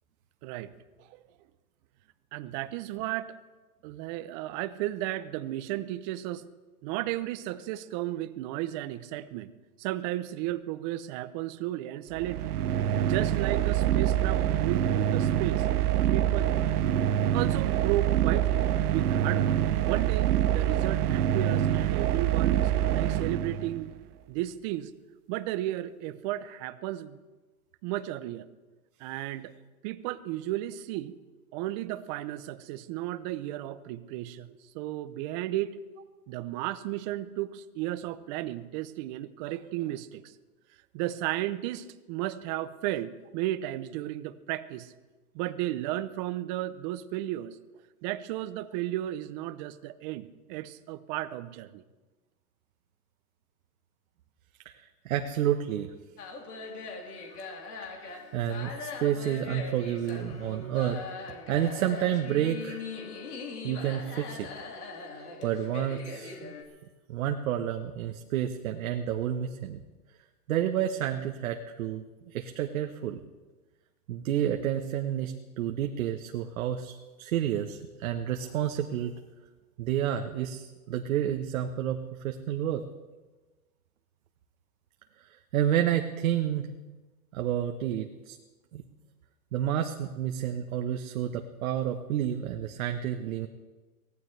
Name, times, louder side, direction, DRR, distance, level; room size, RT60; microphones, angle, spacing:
voice 1, 2.3-3.3 3.8-6.4 6.8-9.5 9.8-12.5 13.0-15.7 16.1-16.5 17.3-23.9 24.3-24.9 25.3-27.2 27.8-28.5 29.0-29.5 29.8-31.1 31.5-35.8 36.3-40.2 40.9-44.9 45.3-47.6 48.0-51.8, right 14 dB, 30° right, 13 dB, 0.6 m, -34 dB
sound 1, 12.1-23.9, right 11 dB, 80° right, 1.0 m, -26 dB
voice 2, 54.6-55.9 57.9-61.0 61.5-62.8 63.6-64.5 65.1-66.5 67.1-69.8 70.5-73.2 74.1-79.1 79.8-82.8 85.5-86.6 87.3-88.4 88.7-88.8 89.5-93.5, right 10 dB, 60° right, 5 dB, 1.2 m, -30 dB
sound 2, 56.2-66.6, left 4 dB, 85° left, 3.7 m, -41 dB
23.5 x 17.5 x 3.3 m, 1.2 s
hypercardioid pair, 140°, 45 cm